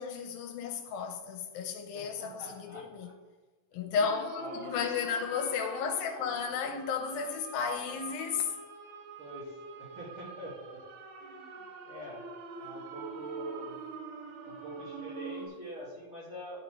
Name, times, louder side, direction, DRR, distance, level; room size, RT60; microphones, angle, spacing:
voice 1, 0.0-3.1 3.7-8.5, left 6 dB, 80° left, 2.5 m, -33 dB
voice 2, 1.9-3.1 3.9-4.8 9.2-10.8 11.2-12.3 12.6-13.8 14.4-16.6, equal, 45° right, 2.1 m, -44 dB
sound 1, 4.0-15.5, right 4 dB, 70° right, 2.3 m, -45 dB
12.0 x 4.0 x 4.9 m
omnidirectional pair, 4.2 m